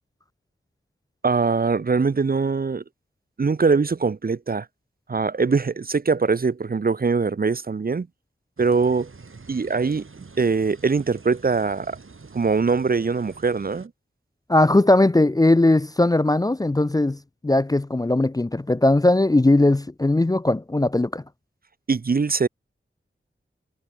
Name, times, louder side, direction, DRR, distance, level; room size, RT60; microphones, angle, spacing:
voice 1, 1.2-2.8 3.4-4.7 5.1-8.1 8.6-9.1 9.5-12.0 12.3-13.9 21.9-22.5, right 4 dB, 45° right, 0.6 m, -22 dB
sound 1, 8.6-13.9, right 4 dB, 75° right, 7.3 m, -46 dB
voice 2, 14.5-21.2, left 2 dB, 15° left, 0.5 m, -19 dB
wide cardioid pair, 55°, 21 cm